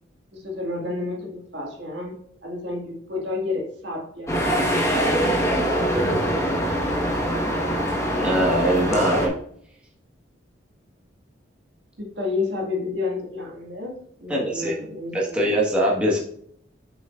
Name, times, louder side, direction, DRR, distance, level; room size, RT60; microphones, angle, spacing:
voice 1, 0.3-2.2 2.4-4.3 12.0-15.7, left 3 dB, 65° right, -1 dB, 1.9 m, -30 dB
sound 1, 4.3-9.3, equal, 15° left, 1.1 m, -23 dB
voice 2, 8.1-9.3 14.3-14.7 15.1-16.2, right 1 dB, 5° right, -5 dB, 1.3 m, -22 dB
7.5 x 6.1 x 2.4 m, 0.65 s
head